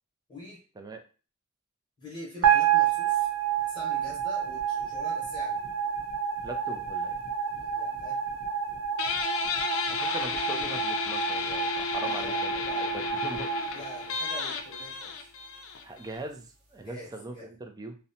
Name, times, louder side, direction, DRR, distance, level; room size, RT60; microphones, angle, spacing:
voice 1, 0.3-0.6 2.0-3.3 3.6-5.6 7.6-8.2 12.0-13.1 13.7-15.3 16.8-17.5, left 1 dB, 25° left, -5 dB, 0.9 m, -44 dB
sound 1, 2.4-14.7, right 8 dB, 85° right, 0.6 m, -29 dB
voice 2, 6.4-7.2 9.9-13.7 15.8-18.0, right 2 dB, 15° right, 5 dB, 0.3 m, -41 dB
Guitar, 9.0-16.2, left 5 dB, 65° left, 0.4 m, -33 dB
2.7 x 2.1 x 2.6 m, 0.35 s
head